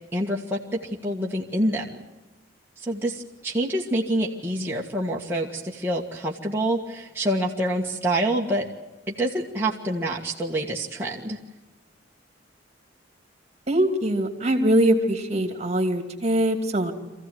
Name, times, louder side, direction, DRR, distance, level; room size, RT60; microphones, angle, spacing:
voice 1, 0.1-2.0 2.8-8.7 9.1-11.4, right 1 dB, 10° right, -4 dB, 1.7 m, -27 dB
voice 2, 13.7-16.9, right 1 dB, 35° right, 7 dB, 2.7 m, -22 dB
25.0 x 15.5 x 9.4 m, 1.1 s
head